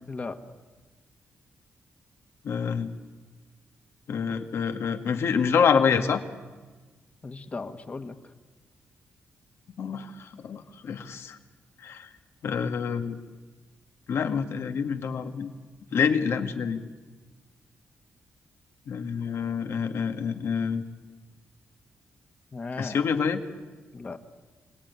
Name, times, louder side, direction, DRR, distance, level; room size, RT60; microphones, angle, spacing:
voice 1, 0.1-0.4 7.2-8.3 22.5-23.0 23.9-24.2, left 3 dB, 30° left, 8 dB, 1.6 m, -36 dB
voice 2, 2.4-2.9 4.1-6.2 9.8-11.4 11.8-12.1 12.4-13.2 14.1-15.5 15.9-16.8 18.9-20.8 22.8-23.4, left 6 dB, 65° left, 7 dB, 1.9 m, -27 dB
26.0 x 18.5 x 9.7 m, 1.3 s
cardioid pair, 125°, 5 cm